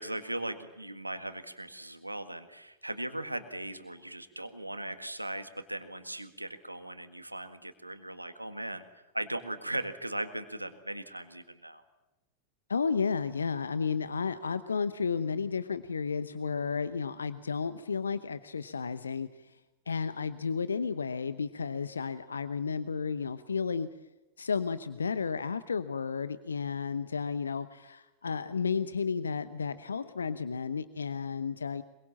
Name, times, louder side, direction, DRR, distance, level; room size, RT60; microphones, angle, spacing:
voice 1, 0.0-8.8 9.1-11.8, right 1 dB, 85° right, 9 dB, 1.8 m, -38 dB
voice 2, 12.7-19.6 19.9-23.9 24.4-31.8, left 5 dB, 75° left, 14 dB, 0.9 m, -32 dB
25.0 x 23.0 x 7.4 m, 1.0 s
figure-of-eight pair, 90°, 0 cm